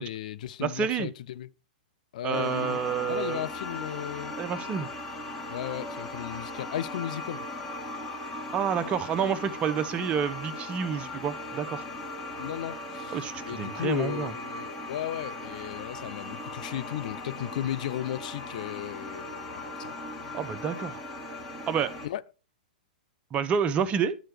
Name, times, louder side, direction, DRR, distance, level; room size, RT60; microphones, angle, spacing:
voice 1, 0.0-1.5 2.1-2.8 3.0-4.3 5.5-7.5 12.4-19.9 22.0-22.2, left 11 dB, 60° left, 0.4 m, -35 dB
voice 2, 0.6-1.1 2.2-3.4 4.4-4.9 8.5-11.8 13.1-14.3 20.3-21.0 21.7-21.9 23.3-24.2, right 7 dB, 25° right, 0.6 m, -29 dB
sound 1, 2.3-22.1, left 2 dB, 10° left, 1.9 m, -38 dB
11.5 x 4.3 x 3.4 m
hypercardioid pair, 115°, 5 cm